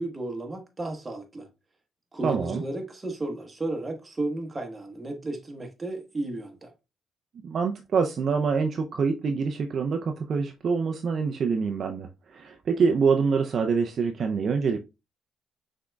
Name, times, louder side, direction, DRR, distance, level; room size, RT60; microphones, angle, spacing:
voice 1, 0.0-1.5 2.1-6.7, right 2 dB, 25° right, 1.3 m, -33 dB
voice 2, 2.2-2.6 7.4-14.8, right 5 dB, 55° right, 0.5 m, -25 dB
5.9 x 3.7 x 2.3 m
cardioid pair, 90°, 0 cm